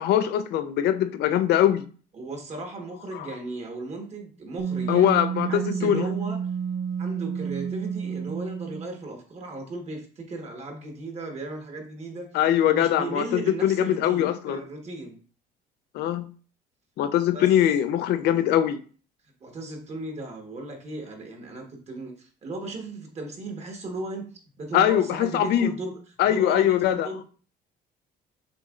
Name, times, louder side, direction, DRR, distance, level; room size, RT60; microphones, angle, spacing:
voice 1, 0.0-1.9 3.1-3.3 4.9-6.1 12.3-14.6 15.9-16.3 17.0-18.8 24.7-25.7 26.2-27.1, left 11 dB, 75° left, 0.5 m, -22 dB
voice 2, 2.1-5.2 5.5-6.4 7.0-12.3 12.6-15.2 17.3-17.5 19.4-24.3 24.6-25.9 26.2-27.2, right 2 dB, 40° right, 1.4 m, -36 dB
Wind instrument woodwind instrument, 4.6-9.0, right 7 dB, 65° right, 0.8 m, -30 dB
6.7 x 3.1 x 2.5 m
cardioid pair, 110°, 17 cm